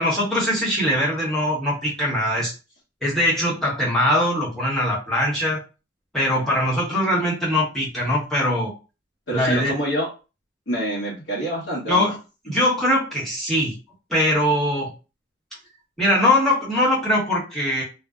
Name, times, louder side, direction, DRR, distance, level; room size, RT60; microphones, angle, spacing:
voice 1, 0.0-2.5 3.0-5.6 6.1-8.7 9.3-9.7 11.9-12.2 12.4-13.7 14.1-14.9 16.0-17.8, left 1 dB, ahead, -7 dB, 1.0 m, -21 dB
voice 2, 9.3-10.1 10.7-12.1, right 1 dB, 75° left, -7 dB, 0.9 m, -26 dB
2.6 x 2.0 x 2.3 m, 0.31 s
head